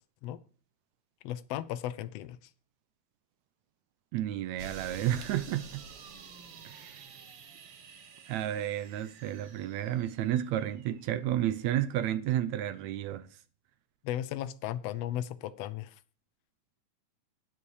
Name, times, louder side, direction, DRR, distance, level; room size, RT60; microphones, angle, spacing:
voice 1, 1.2-2.4 14.0-15.9, left 12 dB, 70° left, 1.6 m, -35 dB
voice 2, 4.1-5.8 6.7-7.0 8.3-13.3, right 12 dB, 75° right, 1.9 m, -31 dB
sound 1, 4.6-11.0, right 6 dB, 55° right, 1.9 m, -49 dB
9.7 x 8.4 x 4.8 m
omnidirectional pair, 3.5 m